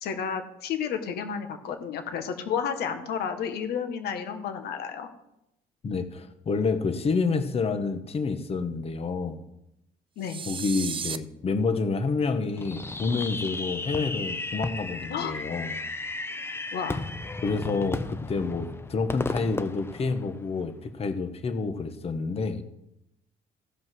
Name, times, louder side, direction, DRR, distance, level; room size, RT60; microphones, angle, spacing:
voice 1, 0.0-5.1 10.2-10.4 15.1-15.3 16.7-17.0, left 7 dB, 70° left, 7 dB, 1.7 m, -31 dB
voice 2, 5.8-9.4 10.5-15.8 17.4-22.6, left 4 dB, 35° left, 9 dB, 1.2 m, -28 dB
sound 1, 10.2-11.2, right 6 dB, 30° right, 0.6 m, -34 dB
Fireworks, 12.6-20.7, left 2 dB, 15° left, 0.7 m, -35 dB
16.0 x 5.3 x 6.2 m, 0.84 s
cardioid pair, 110°, 17 cm